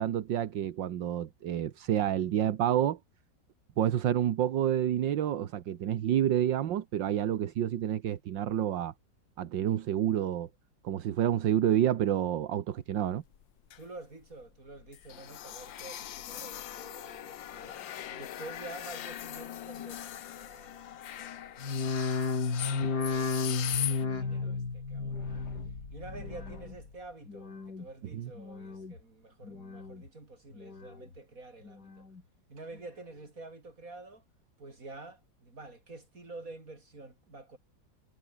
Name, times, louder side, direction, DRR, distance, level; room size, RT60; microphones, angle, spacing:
voice 1, 0.0-3.0 3.8-8.9 9.4-10.5 10.8-13.2 22.8-22.9 28.1-28.3, right 10 dB, 80° right, 1.8 m, -29 dB
sound 1, 13.0-14.0 14.3-14.4 14.7-24.1, left 11 dB, 85° left, 1.7 m, -40 dB
voice 2, 13.8-22.1 22.4-25.4 25.9-32.1 32.5-34.2 34.6-37.6, right 2 dB, 45° right, 5.3 m, -49 dB
sound 2, 21.6-26.9 27.2-27.9 28.3-29.0 29.4-30.1 30.5-31.2 31.6-32.2 32.8-32.9, left 4 dB, 60° left, 3.9 m, -34 dB
omnidirectional pair, 2.0 m